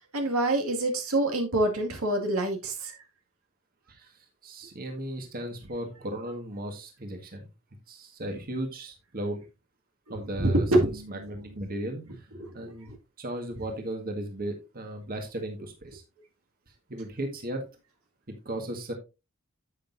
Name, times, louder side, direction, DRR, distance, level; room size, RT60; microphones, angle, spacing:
voice 1, 0.1-3.0 10.4-11.7 12.4-13.0, right 1 dB, 80° right, 2.1 m, -27 dB
voice 2, 3.9-7.5 7.9-9.4 10.1-12.3 12.5-12.9 13.2-16.0 16.9-17.6 18.4-18.9, right 1 dB, 45° right, 1.7 m, -36 dB
10.0 x 7.8 x 2.6 m
head